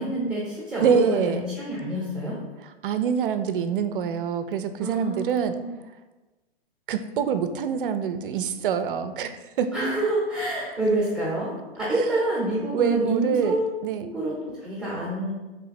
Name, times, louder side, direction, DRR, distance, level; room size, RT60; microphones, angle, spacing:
voice 1, 0.0-2.4 4.8-5.7 9.7-11.5 11.8-13.6 14.0-14.3 14.6-15.3, right 1 dB, ahead, -7 dB, 0.8 m, -27 dB
voice 2, 0.8-1.5 2.6-5.6 6.9-9.7 12.0-12.2 12.7-13.6 13.8-14.1, right 7 dB, 55° right, 10 dB, 0.4 m, -26 dB
3.4 x 2.8 x 4.1 m, 1.2 s
figure-of-eight pair, 120°, 32 cm